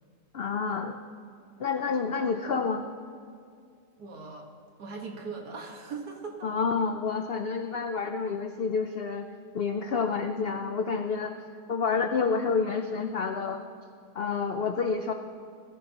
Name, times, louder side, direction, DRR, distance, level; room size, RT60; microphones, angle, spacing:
voice 1, 0.3-1.0 1.6-2.9 6.4-9.3 9.5-11.3 11.7-13.6 14.1-15.1, left 5 dB, 75° left, 6 dB, 0.5 m, -29 dB
voice 2, 4.0-4.5 4.8-6.5, right 4 dB, 70° right, 1 dB, 2.0 m, -39 dB
20.5 x 14.5 x 2.9 m, 2.3 s
omnidirectional pair, 1.8 m